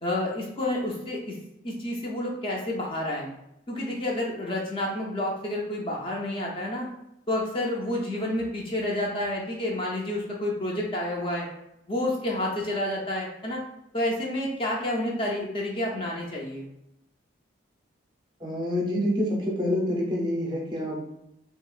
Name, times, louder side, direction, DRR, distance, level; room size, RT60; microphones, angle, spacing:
voice 1, 0.0-1.4 1.6-3.3 3.7-6.9 7.3-11.5 11.9-13.6 13.9-16.7, left 1 dB, 30° left, -3 dB, 0.4 m, -29 dB
voice 2, 18.4-21.1, left 1 dB, 25° right, -3 dB, 0.6 m, -27 dB
2.8 x 2.3 x 2.3 m, 0.85 s
head